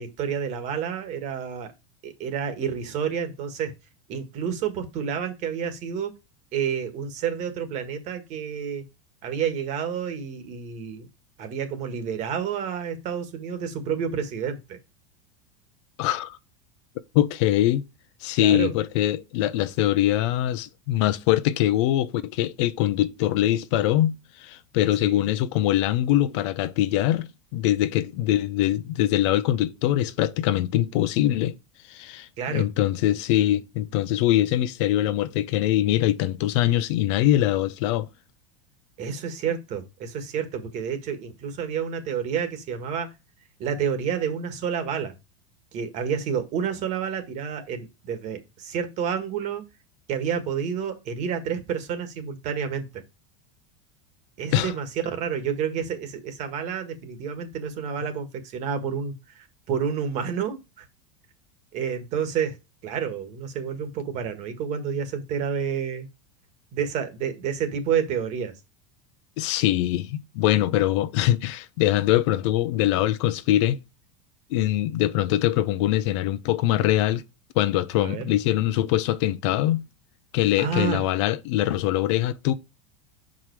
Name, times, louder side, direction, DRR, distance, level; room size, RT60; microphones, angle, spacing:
voice 1, 0.0-1.7 2.0-3.7 4.1-6.1 6.5-8.8 9.2-11.0 11.4-14.8 18.4-18.7 25.0-25.2 32.4-32.6 39.0-43.1 43.6-45.1 45.7-49.6 50.1-53.0 54.4-60.8 61.7-62.6 62.8-66.1 66.7-68.5 78.0-78.3 80.6-81.0, right 7 dB, 45° right, 1.6 m, -29 dB
voice 2, 16.0-16.4 17.1-17.8 18.2-24.1 24.4-31.6 31.9-38.1 54.5-54.7 69.4-73.8 74.5-77.2 77.6-79.8 80.3-82.5, left 13 dB, 65° left, 0.6 m, -23 dB
5.8 x 5.0 x 4.7 m
supercardioid pair, 120°, 16 cm